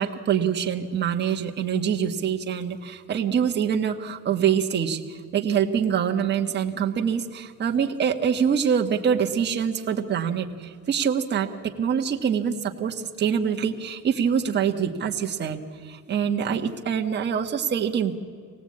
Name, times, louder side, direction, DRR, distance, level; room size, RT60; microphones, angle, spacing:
voice 1, 0.0-18.1, right 7 dB, 25° right, 3 dB, 1.3 m, -25 dB
24.5 x 19.0 x 8.5 m, 2.1 s
cardioid pair, 165°, 38 cm